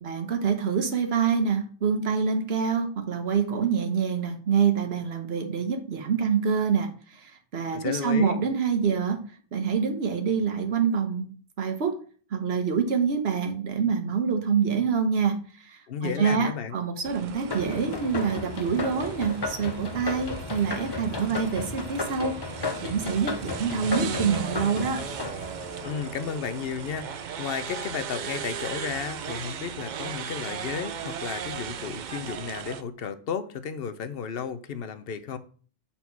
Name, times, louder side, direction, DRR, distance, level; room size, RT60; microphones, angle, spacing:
voice 1, 0.0-9.2 9.5-11.3 11.6-12.0 12.3-22.4 22.8-25.1, right 6 dB, 85° right, 1.2 m, -26 dB
voice 2, 7.7-8.4 15.9-16.8 25.8-35.4, left 7 dB, 70° left, 0.9 m, -33 dB
sound 1, 17.0-32.8, right 7 dB, 55° right, 0.6 m, -37 dB
sound 2, 17.5-26.6, left 4 dB, 30° left, 0.6 m, -34 dB
7.3 x 4.3 x 4.6 m
omnidirectional pair, 1.0 m